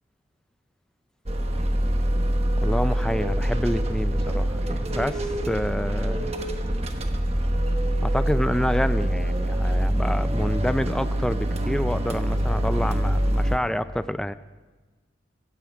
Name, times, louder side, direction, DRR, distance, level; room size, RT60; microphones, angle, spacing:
sound 1, 1.3-13.6, right 1 dB, 35° right, 1.2 m, -25 dB
voice 1, 2.6-6.4 8.0-14.3, equal, 5° left, 13 dB, 0.4 m, -28 dB
16.0 x 15.0 x 5.1 m, 1.3 s
head